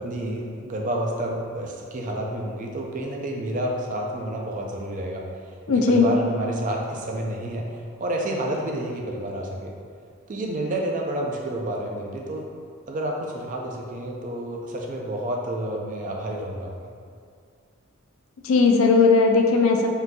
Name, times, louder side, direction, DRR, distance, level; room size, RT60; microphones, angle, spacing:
voice 1, 0.0-5.2 5.7-7.7 8.0-9.7 10.3-12.5 12.9-16.7, right 1 dB, 35° right, 0 dB, 0.3 m, -29 dB
voice 2, 5.7-6.1 18.4-19.9, left 4 dB, 65° left, 3 dB, 0.3 m, -17 dB
3.8 x 2.6 x 2.2 m, 2.2 s
head